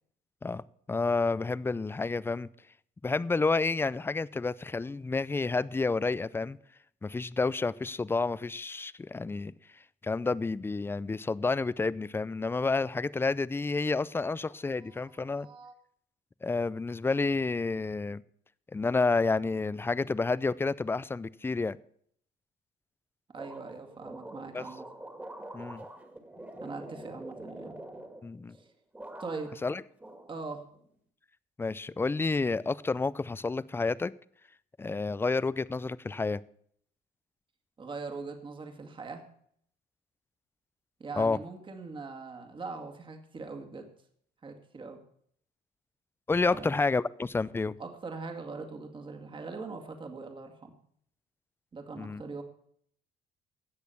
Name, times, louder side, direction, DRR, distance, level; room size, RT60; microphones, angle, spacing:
voice 1, 0.9-2.5 3.0-6.6 7.0-9.5 10.0-15.5 16.4-18.2 18.7-21.8 24.5-24.6 25.5-25.9 28.2-28.6 29.6-29.8 31.6-34.1 34.8-36.4 41.2-41.4 46.3-47.8 52.0-52.2, left 3 dB, 15° left, 19 dB, 0.4 m, -30 dB
voice 2, 15.3-15.7 23.3-24.9 26.6-27.8 29.2-29.5 30.3-30.6 37.8-39.2 41.0-43.9 44.4-45.0 46.5-46.7 47.8-50.7 51.7-52.4, right 4 dB, 30° right, 5 dB, 2.1 m, -41 dB
sound 1, 23.3-28.6 28.9-29.7 30.0-30.9, right 1 dB, 10° right, 2.1 m, -45 dB
16.5 x 6.5 x 7.0 m, 0.64 s
cardioid pair, 110°, 17 cm